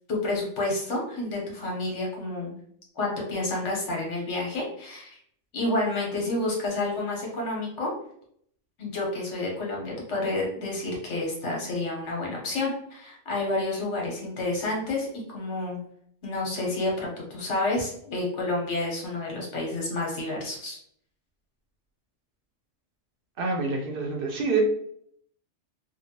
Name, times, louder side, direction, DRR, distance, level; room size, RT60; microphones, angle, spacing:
voice 1, 0.1-2.5 3.0-5.2 5.5-7.9 8.8-15.1 15.3-15.8 16.2-20.8, left 2 dB, 80° left, -2 dB, 1.3 m, -29 dB
voice 2, 23.4-24.6, right 4 dB, 60° right, 1 dB, 0.7 m, -27 dB
3.0 x 2.2 x 2.8 m, 0.66 s
omnidirectional pair, 1.2 m